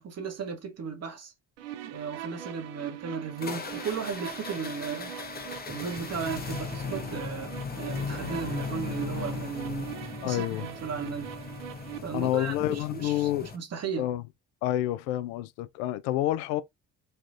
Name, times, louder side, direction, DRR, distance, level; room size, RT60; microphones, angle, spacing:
voice 1, 0.0-1.3 1.8-5.1 5.7-9.9 10.2-11.3 12.0-14.1, right 6 dB, 35° right, 0.9 m, -35 dB
sound 1, 1.6-12.0, right 11 dB, 65° right, 0.6 m, -41 dB
sound 2, 3.4-13.6, left 5 dB, 20° left, 0.7 m, -38 dB
voice 2, 10.2-10.7 12.1-13.5 14.0-14.2 14.6-16.6, left 14 dB, 65° left, 0.5 m, -28 dB
3.3 x 2.4 x 2.4 m
figure-of-eight pair, 50°, 45 cm